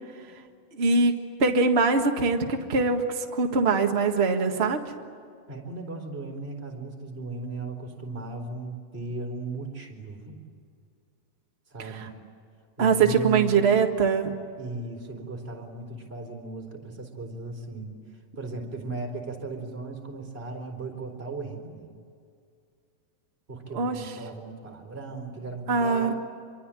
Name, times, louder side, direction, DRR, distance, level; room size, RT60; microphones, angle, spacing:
voice 1, 0.7-4.8 12.0-12.1 12.8-14.3 23.7-23.9 25.7-26.1, right 4 dB, 50° right, 3 dB, 0.7 m, -23 dB
voice 2, 5.5-10.4 11.7-12.1 12.8-13.7 14.6-18.0 18.3-22.0 23.5-26.1, right 3 dB, 15° right, 2 dB, 4.0 m, -36 dB
27.0 x 23.5 x 9.0 m, 2.3 s
omnidirectional pair, 4.1 m